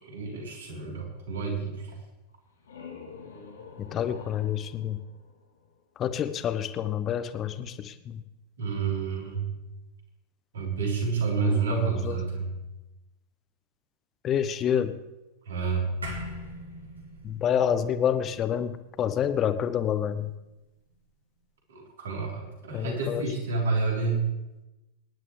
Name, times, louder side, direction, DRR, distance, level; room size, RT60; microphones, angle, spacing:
voice 1, 0.0-1.8 8.6-9.5 10.5-12.5 15.5-15.9 21.7-24.2, right 5 dB, 65° right, -2 dB, 3.9 m, -29 dB
sound 1, 2.3-6.0, left 5 dB, 70° left, 2.5 m, -47 dB
voice 2, 3.8-5.0 6.0-8.2 11.4-12.2 14.2-14.9 17.2-20.3 22.7-23.2, left 9 dB, 30° left, 11 dB, 0.9 m, -28 dB
sound 2, 16.0-20.6, right 1 dB, 80° right, 3.0 m, -43 dB
25.0 x 10.5 x 3.3 m, 1.0 s
figure-of-eight pair, 90°, 0 cm